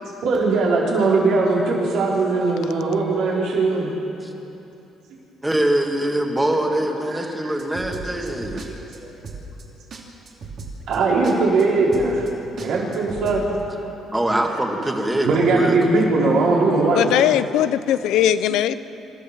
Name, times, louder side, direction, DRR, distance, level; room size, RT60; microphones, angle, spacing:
voice 1, 0.2-3.9 7.1-7.6 8.1-8.2 10.9-12.3 12.6-13.4 14.5-14.6 15.0-17.1, right 3 dB, 70° right, -4 dB, 5.4 m, -20 dB
voice 2, 5.4-8.6 14.1-16.0, right 1 dB, 10° right, 2 dB, 2.2 m, -23 dB
sound 1, 7.6-8.7 8.9-9.0 9.2-9.6 9.9-10.0 10.3-11.0 11.2-11.6 11.9-12.3 12.6-13.4, right 5 dB, 55° right, 3.1 m, -36 dB
voice 3, 16.9-18.8, left 11 dB, 85° left, 14 dB, 0.7 m, -19 dB
26.0 x 14.0 x 7.5 m, 2.8 s
cardioid pair, 130°, 0 cm